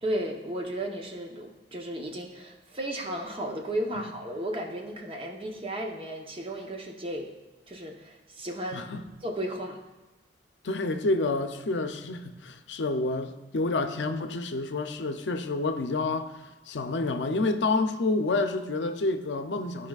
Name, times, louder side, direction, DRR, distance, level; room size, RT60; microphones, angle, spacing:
voice 1, 0.0-7.3 7.7-8.8 9.2-9.8, right 1 dB, 30° right, 0.8 m, -34 dB
voice 2, 8.7-9.0 10.6-16.4 16.7-19.9, left 3 dB, 80° left, 0.6 m, -29 dB
14.5 x 4.9 x 2.4 m
head